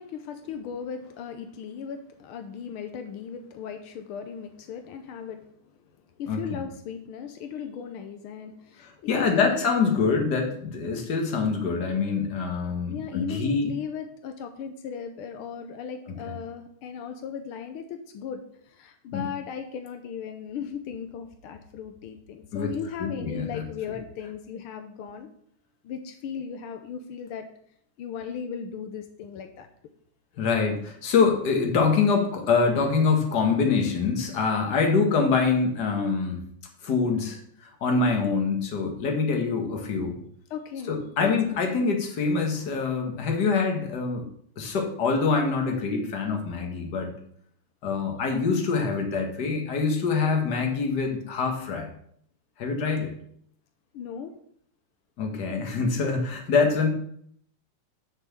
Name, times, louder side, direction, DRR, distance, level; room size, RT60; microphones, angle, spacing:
voice 1, 0.0-5.5 6.2-9.6 12.9-25.3 25.8-27.5 28.0-29.7 37.0-37.1 40.5-41.6 53.9-54.3, left 7 dB, 85° left, 7 dB, 1.1 m, -37 dB
voice 2, 8.8-13.7 19.1-19.2 22.5-22.7 23.0-24.0 30.4-36.4 36.8-40.2 40.9-44.2 44.6-47.1 47.8-51.9 52.6-53.1 55.2-56.9, left 4 dB, 45° left, 3 dB, 1.6 m, -25 dB
6.6 x 5.9 x 7.4 m, 0.66 s
omnidirectional pair, 3.3 m